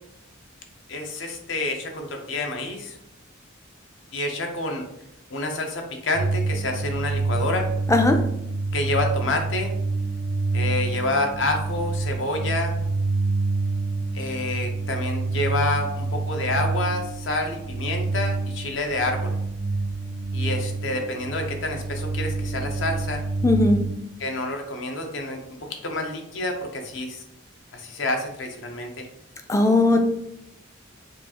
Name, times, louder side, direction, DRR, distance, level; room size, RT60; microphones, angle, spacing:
voice 1, 0.9-3.0 4.1-4.8 5.3-7.7 8.7-9.7 10.5-12.8 14.1-19.3 20.3-23.2 24.2-25.4 25.7-27.2 27.7-29.1 29.9-30.0, left 2 dB, 65° left, 4 dB, 0.7 m, -28 dB
sound 1, 6.1-23.9, right 3 dB, 85° right, 0.6 m, -27 dB
voice 2, 23.4-23.8 29.5-30.0, left 2 dB, 15° left, 5 dB, 0.3 m, -18 dB
4.6 x 2.4 x 2.8 m, 0.82 s
head